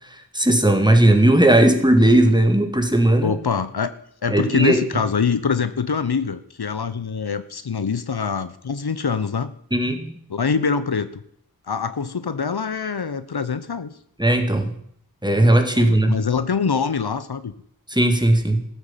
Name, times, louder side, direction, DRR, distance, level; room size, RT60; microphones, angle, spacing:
voice 1, 0.1-3.3 4.3-4.8 9.7-10.2 14.2-14.8 15.2-16.2 17.9-18.7, right 1 dB, 10° right, 5 dB, 2.1 m, -17 dB
voice 2, 3.2-3.9 4.2-9.5 10.3-11.2 11.7-13.9 15.8-17.5, left 5 dB, 80° left, 12 dB, 0.9 m, -24 dB
14.5 x 8.2 x 7.4 m, 0.67 s
wide cardioid pair, 45°, 38 cm